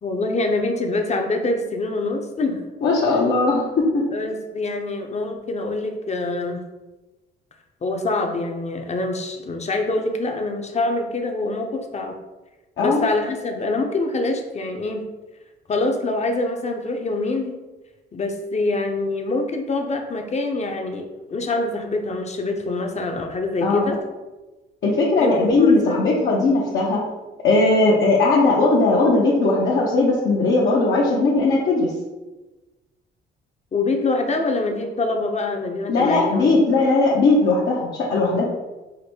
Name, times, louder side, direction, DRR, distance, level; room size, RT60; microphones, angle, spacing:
voice 1, 0.0-2.6 3.1-3.3 4.1-6.6 7.8-12.2 12.8-15.0 15.7-17.6 18.1-24.0 25.2-26.1 33.7-36.7, left 2 dB, 35° left, 4 dB, 0.7 m, -25 dB
voice 2, 2.8-3.6 3.9-4.0 12.8-13.1 23.6-23.9 24.8-27.0 27.4-31.9 35.9-38.5, left 3 dB, 65° left, -6 dB, 0.9 m, -18 dB
5.0 x 2.1 x 4.4 m, 1.1 s
cardioid pair, 90°, 20 cm